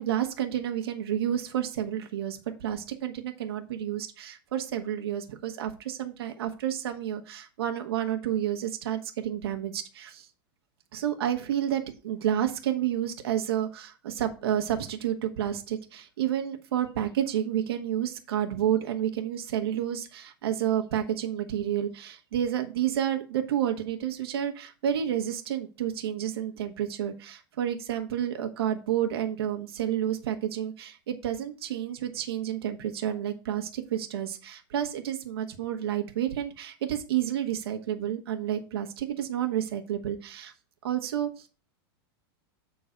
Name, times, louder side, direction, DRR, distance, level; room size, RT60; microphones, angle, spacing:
voice 1, 0.0-10.3 10.9-40.5 40.8-41.5, right 10 dB, 70° right, 5 dB, 1.2 m, -30 dB
8.0 x 3.9 x 5.0 m, 0.33 s
supercardioid pair, 180°, 13 cm